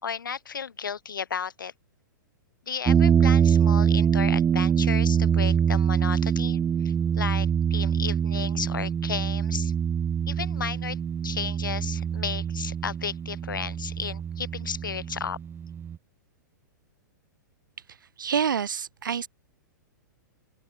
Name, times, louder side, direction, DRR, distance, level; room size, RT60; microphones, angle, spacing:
voice 1, 0.0-1.7 2.7-9.7 10.3-11.0 11.2-15.4, left 7 dB, 85° left, 3.9 m, -34 dB
sound 1, 2.9-16.0, right 8 dB, 20° right, 2.2 m, -24 dB
voice 2, 18.2-19.3, right 7 dB, 80° right, 6.3 m, -27 dB
open air
hypercardioid pair, 120°, 11 cm